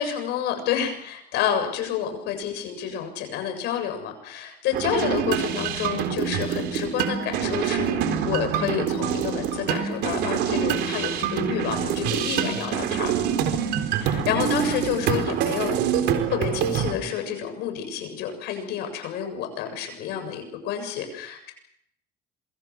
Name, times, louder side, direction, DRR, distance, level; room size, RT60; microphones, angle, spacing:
voice 1, 0.0-8.0 8.3-13.1 14.0-15.8 16.3-21.5, left 8 dB, 85° left, 6 dB, 7.6 m, -29 dB
sound 1, 4.7-16.9, right 8 dB, 85° right, 3.9 m, -26 dB
27.0 x 24.5 x 6.3 m, 0.73 s
cardioid pair, 110°, 17 cm